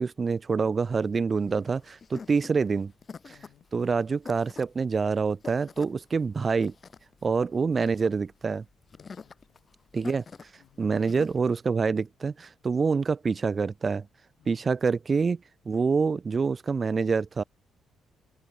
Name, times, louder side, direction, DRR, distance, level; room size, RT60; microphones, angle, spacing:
voice 1, 0.0-2.9 3.7-6.7 7.2-8.6 9.9-10.2 10.8-14.0 14.5-15.4 15.7-17.4, right 5 dB, 35° right, 0.7 m, -26 dB
sound 1, 0.8-11.4, left 5 dB, 40° left, 5.4 m, -47 dB
voice 2, 2.2-2.5 3.3-3.7 9.0-9.6 10.6-10.9 14.4-14.7, left 12 dB, 75° left, 6.3 m, -61 dB
open air
cardioid pair, 90°, 0 cm